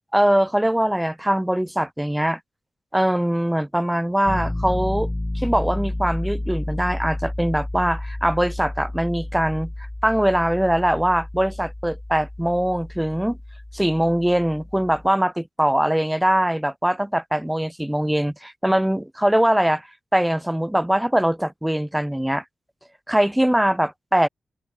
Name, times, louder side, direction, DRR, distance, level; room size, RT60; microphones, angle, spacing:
voice 1, 0.1-2.4 2.9-5.1 5.3-9.7 10.0-13.4 13.7-19.9 20.1-22.4 23.1-24.3, right 1 dB, 5° right, 2.3 m, -22 dB
Piano, 4.3-15.1, left 1 dB, 15° left, 1.6 m, -31 dB
open air
wide cardioid pair, 115°, 0 cm